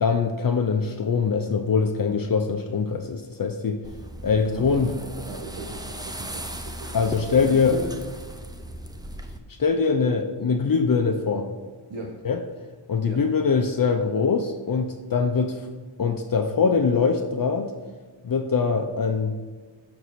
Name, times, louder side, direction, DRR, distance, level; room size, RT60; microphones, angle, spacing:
voice 1, 0.0-3.8 4.2-4.9 6.9-7.8 9.6-11.5 12.2-12.4 12.9-15.7 16.0-17.7 18.2-19.4, left 5 dB, 50° left, 5 dB, 0.6 m, -23 dB
sound 1, 3.8-9.4, right 1 dB, 10° right, 0.5 m, -37 dB
voice 2, 4.3-8.0 11.9-12.2 13.1-13.3, right 2 dB, 80° right, 0 dB, 1.0 m, -37 dB
6.8 x 4.7 x 4.1 m, 1.4 s
wide cardioid pair, 85°, 47 cm